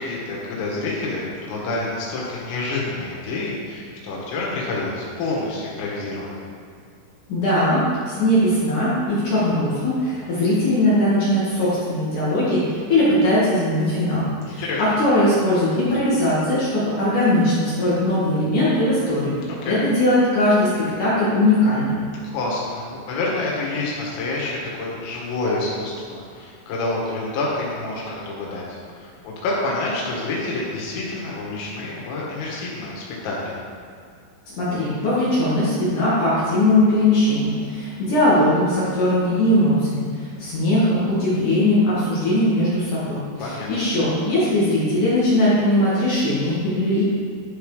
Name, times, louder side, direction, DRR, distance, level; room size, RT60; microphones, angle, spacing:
voice 1, 0.0-6.3 14.5-14.8 19.6-19.8 22.3-33.5 43.4-43.7, left 2 dB, 80° left, -4 dB, 4.6 m, -28 dB
voice 2, 7.3-19.4 19.6-22.0 34.5-47.0, left 1 dB, 50° left, -9 dB, 2.7 m, -20 dB
12.0 x 5.5 x 5.0 m, 2.3 s
omnidirectional pair, 5.9 m